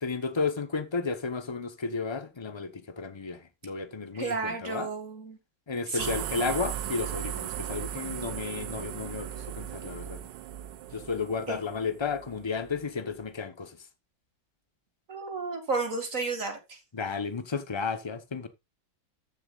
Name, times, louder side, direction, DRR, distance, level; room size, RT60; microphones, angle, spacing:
voice 1, 0.0-4.9 5.7-10.2 10.9-13.8 16.9-18.5, left 4 dB, 30° left, 0.5 m, -33 dB
voice 2, 4.1-5.4 5.9-6.1 11.5-11.6 15.1-16.8, right 4 dB, 40° right, 2.5 m, -32 dB
sound 1, 6.0-12.8, right 11 dB, 70° right, 1.2 m, -37 dB
14.0 x 7.0 x 2.4 m
omnidirectional pair, 2.1 m